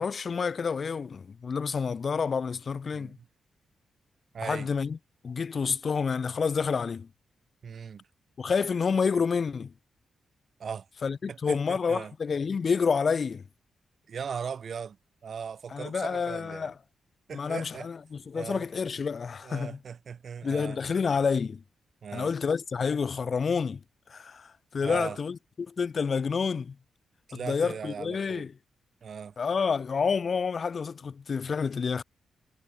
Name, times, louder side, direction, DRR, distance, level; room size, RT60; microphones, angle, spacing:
voice 1, 0.0-3.2 4.4-5.0 5.2-7.1 8.4-9.7 11.0-13.4 15.7-16.7 17.3-19.8 20.4-21.6 22.1-23.8 24.1-26.8 27.3-28.5 29.4-32.0, left 5 dB, 50° left, 0.7 m, -29 dB
voice 2, 2.9-3.3 4.3-4.7 7.6-8.1 10.6-10.9 11.3-12.1 14.1-15.0 15.2-16.7 17.3-17.9 18.3-18.7 19.4-20.8 22.0-22.3 24.8-25.2 27.3-28.4 29.0-29.3, right 6 dB, 60° right, 3.5 m, -38 dB
cardioid pair, 85°, 0 cm